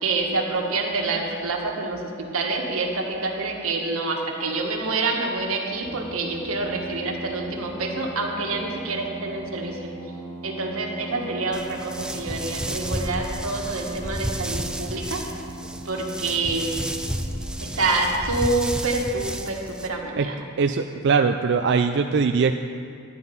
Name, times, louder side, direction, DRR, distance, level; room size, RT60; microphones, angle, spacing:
voice 1, 0.0-9.9 10.4-15.2 15.8-16.8 17.6-20.4, right 3 dB, 90° right, 1 dB, 1.7 m, -27 dB
Brass instrument, 5.8-18.1, right 2 dB, 40° left, 3.3 m, -39 dB
sound 1, 11.5-19.9, right 1 dB, 5° right, 0.6 m, -32 dB
voice 2, 20.6-22.5, right 5 dB, 55° right, 6 dB, 0.4 m, -21 dB
11.5 x 9.8 x 5.4 m, 2.3 s
head